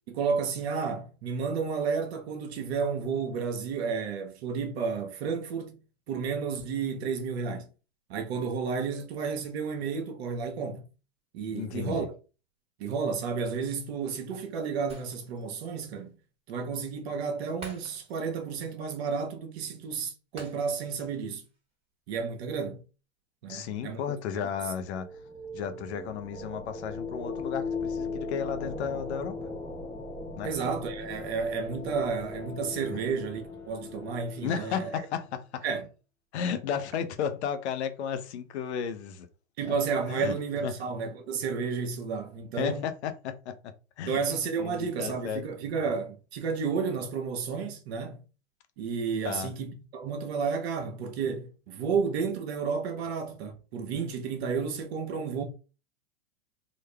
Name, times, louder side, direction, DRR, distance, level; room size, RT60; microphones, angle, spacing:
voice 1, 0.1-5.8 6.1-7.7 8.1-10.8 11.3-12.1 12.8-16.1 16.5-21.4 22.1-22.8 23.4-24.0 24.4-24.5 30.4-34.9 35.6-35.8 39.6-42.9 44.1-48.2 48.8-55.4, right 5 dB, 55° right, 1.1 m, -31 dB
voice 2, 11.5-12.1 23.5-25.1 25.5-29.4 30.4-30.5 32.9-33.0 34.4-35.7 36.3-39.3 39.6-39.7 40.1-40.8 42.6-44.2 44.6-45.4 49.2-49.5, left 7 dB, 60° left, 0.9 m, -34 dB
Shatter, 14.9-15.6 16.0-16.1 17.6-18.4 18.7-18.8 20.4-21.1 21.4-21.6, right 2 dB, 15° right, 1.6 m, -48 dB
sound 1, 24.5-35.1, left 3 dB, 5° left, 0.8 m, -38 dB
3.9 x 2.6 x 3.3 m
hypercardioid pair, 110°, 37 cm